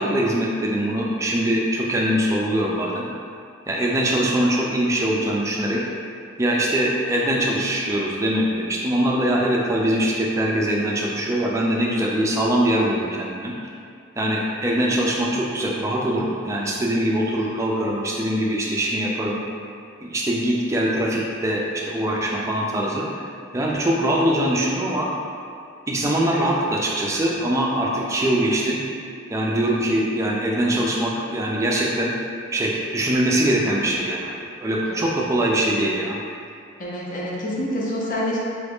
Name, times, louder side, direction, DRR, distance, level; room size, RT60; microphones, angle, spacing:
voice 1, 0.0-3.0 3.7-5.8 6.4-13.5 14.2-19.4 20.0-23.3 23.5-25.1 25.9-28.8 29.3-32.1 32.5-36.2, right 1 dB, 15° right, -3 dB, 0.3 m, -22 dB
voice 2, 36.8-38.4, left 1 dB, 45° left, -5 dB, 0.6 m, -27 dB
3.1 x 2.5 x 3.4 m, 2.3 s
head